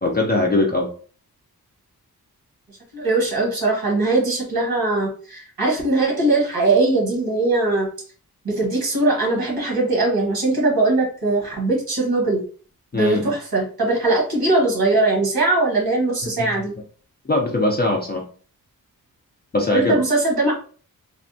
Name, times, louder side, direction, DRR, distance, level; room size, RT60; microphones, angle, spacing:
voice 1, 0.0-0.9 12.9-13.3 16.4-16.5 17.3-18.2 19.5-20.0, left 2 dB, 30° left, 0 dB, 0.4 m, -21 dB
voice 2, 2.9-7.9 8.4-12.4 12.9-16.7 19.7-20.5, right 2 dB, 90° right, -1 dB, 1.2 m, -20 dB
3.4 x 2.1 x 2.6 m, 0.41 s
wide cardioid pair, 165°, 36 cm